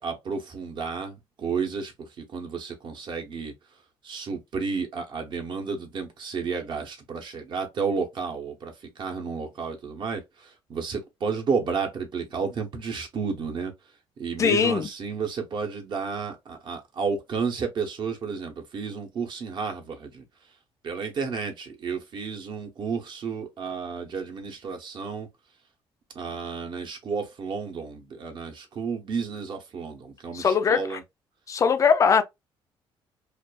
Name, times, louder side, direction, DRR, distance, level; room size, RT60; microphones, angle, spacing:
voice 1, 0.0-3.5 4.0-13.7 14.2-20.2 20.8-25.3 26.1-31.0, right 5 dB, 50° right, 0.8 m, -32 dB
voice 2, 14.4-14.9 30.3-31.0 31.5-32.2, left 6 dB, 30° left, 0.4 m, -21 dB
2.4 x 2.2 x 2.3 m
cardioid pair, 120°, 10 cm